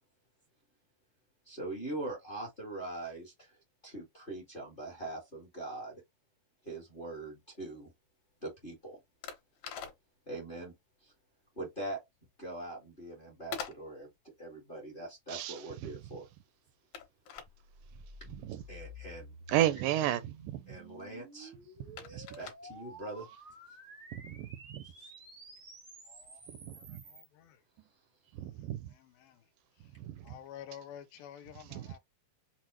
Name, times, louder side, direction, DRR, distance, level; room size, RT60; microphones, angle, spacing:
voice 1, 1.4-3.6 3.8-5.9 6.6-7.9 8.4-9.0 10.3-10.7 11.0-11.1 11.5-12.0 12.4-14.1 14.4-16.3 18.2-18.3 18.7-19.9 20.7-21.5 22.1-23.3 25.0-25.1, right 2 dB, 40° left, 0.7 m, -42 dB
sound 1, 6.8-26.6, left 7 dB, 65° left, 2.1 m, -50 dB
sound 2, 17.3-27.3, equal, 60° right, 0.7 m, -52 dB
voice 2, 19.5-20.6 24.1-24.8 26.7-27.0 28.4-28.8 30.1-30.2 31.7-31.9, right 13 dB, 80° right, 2.0 m, -32 dB
voice 3, 30.3-32.0, left 10 dB, 85° left, 2.3 m, -47 dB
5.9 x 2.3 x 2.9 m
omnidirectional pair, 4.1 m